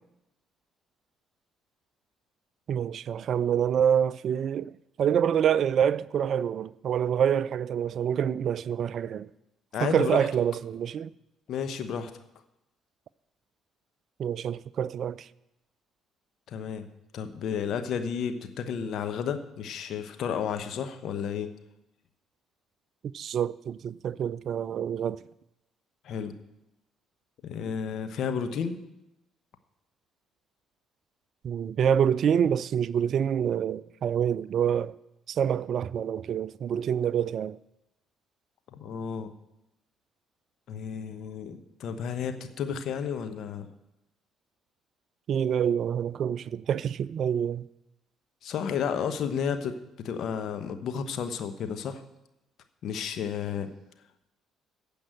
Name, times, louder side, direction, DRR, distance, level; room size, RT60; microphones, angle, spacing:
voice 1, 2.7-4.7 5.0-9.3 9.8-11.1 14.2-15.3 23.1-25.2 31.4-34.9 35.3-37.6 45.3-47.7, right 8 dB, 55° right, 0.3 m, -26 dB
voice 2, 9.7-10.3 11.5-12.1 16.5-16.9 17.1-21.5 26.0-26.4 27.4-28.8 38.7-39.3 40.7-43.7 48.4-52.0 52.8-53.7, left 7 dB, 55° left, 1.0 m, -32 dB
15.0 x 5.3 x 7.8 m
figure-of-eight pair, 50°, 0 cm